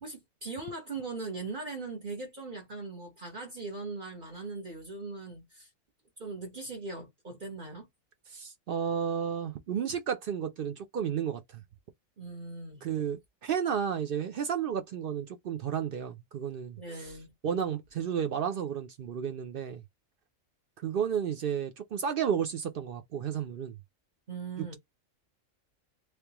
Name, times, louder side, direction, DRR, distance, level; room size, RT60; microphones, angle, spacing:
voice 1, 0.0-5.7 6.2-7.9 12.2-12.9 16.8-17.3 24.3-24.8, right 3 dB, 40° right, 1.2 m, -40 dB
voice 2, 8.3-11.6 12.8-17.1 17.4-19.8 20.8-23.7, right 8 dB, 65° right, 0.5 m, -32 dB
3.2 x 3.2 x 2.9 m
omnidirectional pair, 1.4 m